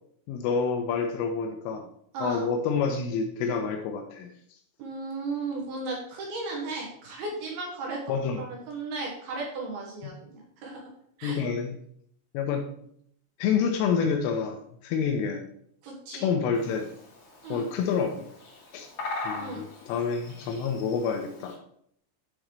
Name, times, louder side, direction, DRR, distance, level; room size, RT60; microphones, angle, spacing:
voice 1, 0.3-1.8 2.2-4.3 8.1-8.4 10.0-10.1 11.2-11.7 12.3-12.9 13.4-15.5 16.1-16.9 17.5-18.2 18.7-18.9 19.2-21.6, left 6 dB, 85° left, 3 dB, 3.2 m, -28 dB
voice 2, 2.1-2.5 4.8-8.0 8.4-10.8 11.2-11.4 15.8-16.3 17.4-17.7 19.4-19.6, right 3 dB, 65° right, -1 dB, 2.6 m, -35 dB
Bird vocalization bird call bird song, 16.5-21.5, left 3 dB, 45° left, 3.3 m, -41 dB
10.5 x 3.9 x 4.7 m, 0.67 s
omnidirectional pair, 5.8 m